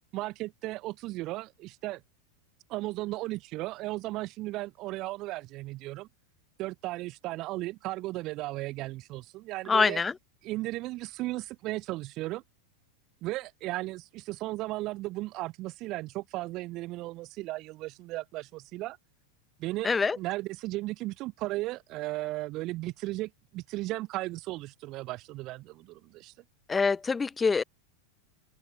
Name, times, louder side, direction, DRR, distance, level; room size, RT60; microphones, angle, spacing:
voice 1, 0.1-2.0 2.7-6.1 6.6-10.0 10.4-12.4 13.2-19.0 19.6-26.3, right 19 dB, 30° right, 1.9 m, -35 dB
voice 2, 9.7-10.1 19.8-20.2 26.7-27.6, left 4 dB, 10° left, 0.8 m, -25 dB
open air
supercardioid pair, 175°, 0 cm